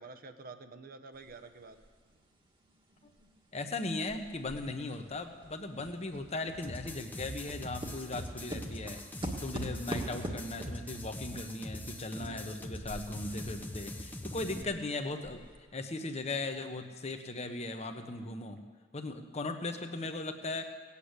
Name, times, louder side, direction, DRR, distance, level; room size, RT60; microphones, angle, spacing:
voice 1, 0.0-1.8 12.2-12.6 14.5-14.8, right 3 dB, 45° right, 8 dB, 0.9 m, -49 dB
sound 1, 1.3-1.4 1.8-3.7 4.1-13.6 13.9-14.0 14.5-14.6 15.1-15.6, right 1 dB, 25° right, 1.5 m, -43 dB
voice 2, 3.5-9.0 9.4-15.4 15.7-18.6 18.9-20.6, left 2 dB, 35° left, 6 dB, 1.0 m, -38 dB
sound 2, 6.6-14.6, left 1 dB, 10° left, 0.8 m, -44 dB
18.0 x 8.4 x 8.2 m, 1.5 s
head